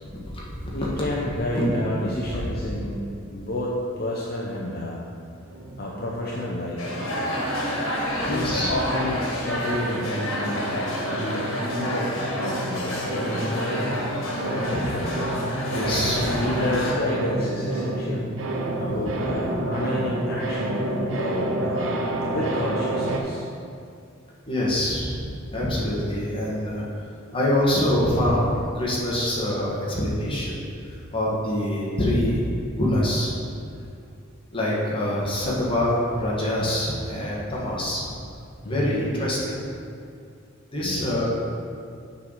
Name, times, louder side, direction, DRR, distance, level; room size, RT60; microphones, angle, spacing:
voice 1, 0.7-3.0 3.3-5.0 5.8-7.0 8.1-10.8 11.1-13.8 14.5-15.1 15.9-18.3 18.8-23.5 38.6-39.0 40.8-41.1, left 1 dB, 45° left, -4 dB, 0.7 m, -30 dB
sound 1, 5.5-8.1 8.3-23.2, right 1 dB, 70° right, 0.7 m, -30 dB
sound 2, 6.8-16.9, equal, 75° left, 1.6 m, -29 dB
voice 2, 8.1-8.7 14.7-14.8 15.7-16.4 18.9-19.1 24.5-25.2 25.5-26.8 27.3-32.4 32.7-33.3 34.5-38.1 38.7-39.6 40.7-41.3, left 1 dB, 25° left, -7 dB, 1.6 m, -25 dB
7.0 x 4.1 x 6.4 m, 2.4 s
head